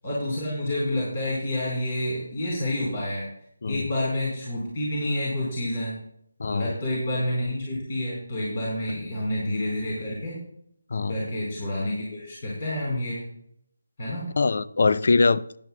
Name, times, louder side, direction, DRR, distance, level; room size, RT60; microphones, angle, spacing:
voice 1, 0.0-3.3 3.7-6.0 6.5-10.4 11.1-13.2 14.0-14.3, left 1 dB, 40° left, 4.5 m, -29 dB
voice 2, 6.4-6.7 10.9-11.1 14.4-15.6, left 4 dB, 55° left, 0.4 m, -22 dB
16.0 x 11.0 x 2.3 m
figure-of-eight pair, 165°, 0 cm